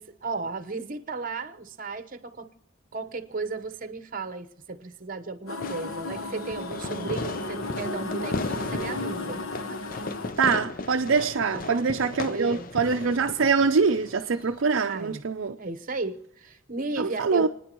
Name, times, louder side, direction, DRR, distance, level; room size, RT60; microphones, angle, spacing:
voice 1, 0.0-2.5 2.9-9.4 9.7-10.0 11.5-11.9 12.2-12.7 14.8-15.2 15.6-17.5, right 3 dB, 40° right, 1.0 m, -35 dB
sound 1, 5.5-10.3, left 2 dB, 80° left, 0.9 m, -34 dB
Fireworks, 5.6-14.6, left 3 dB, 40° left, 0.6 m, -36 dB
voice 2, 10.4-15.6 17.0-17.5, right 5 dB, 65° right, 0.5 m, -24 dB
29.5 x 10.0 x 3.0 m
head